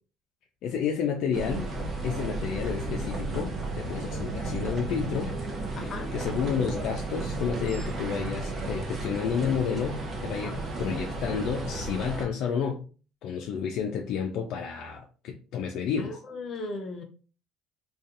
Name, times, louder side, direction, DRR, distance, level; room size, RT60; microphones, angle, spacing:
voice 1, 0.6-1.7 2.0-5.3 5.8-12.8 13.2-16.2, left 7 dB, 70° left, 0.3 m, -31 dB
sound 1, 1.3-12.3, right 2 dB, 35° right, 0.7 m, -33 dB
voice 2, 5.7-6.1 10.3-10.5 16.0-17.0, left 2 dB, 45° left, 0.7 m, -37 dB
2.6 x 2.3 x 2.5 m
supercardioid pair, 95°, 0 cm